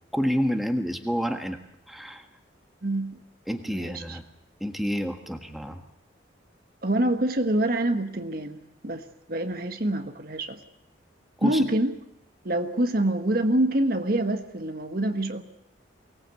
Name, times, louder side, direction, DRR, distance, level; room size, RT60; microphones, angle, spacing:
voice 1, 0.1-1.6 1.9-2.3 3.5-4.2 4.6-5.8 11.4-11.6, equal, ahead, 5 dB, 1.5 m, -28 dB
voice 2, 2.8-3.2 3.7-4.2 6.8-9.0 9.3-10.6 11.4-11.9 12.4-15.4, right 1 dB, 50° right, 7 dB, 1.4 m, -26 dB
23.5 x 19.0 x 8.2 m, 0.77 s
head